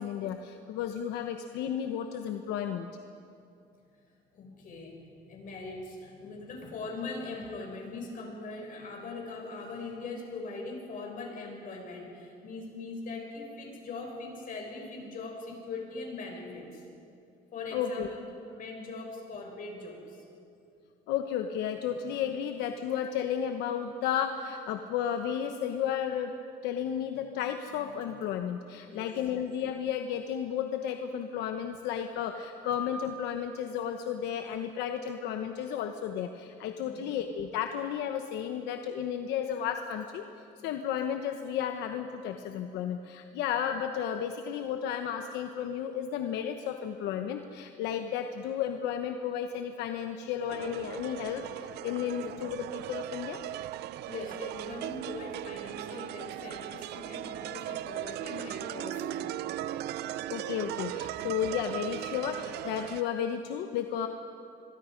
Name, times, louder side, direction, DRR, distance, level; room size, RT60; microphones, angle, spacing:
voice 1, 0.0-2.9 17.7-18.1 21.1-26.3 26.6-40.3 40.6-53.4 60.3-64.1, left 8 dB, 90° left, 6 dB, 1.0 m, -33 dB
voice 2, 4.3-16.8 17.5-20.2 28.9-29.1 36.8-37.1 54.1-59.4, left 3 dB, 55° left, 0 dB, 6.7 m, -41 dB
sound 1, 50.5-63.0, right 13 dB, 75° right, 0.6 m, -38 dB
26.5 x 23.0 x 5.2 m, 2.6 s
cardioid pair, 110°, 17 cm